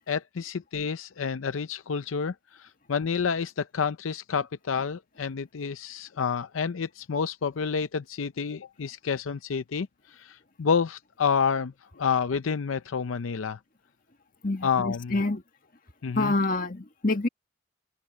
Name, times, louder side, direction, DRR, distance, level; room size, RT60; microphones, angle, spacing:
voice 1, 0.1-13.6 14.6-15.2 16.0-16.3, left 6 dB, 85° left, 0.5 m, -29 dB
voice 2, 14.4-15.4 16.2-17.3, left 2 dB, 45° left, 1.7 m, -27 dB
head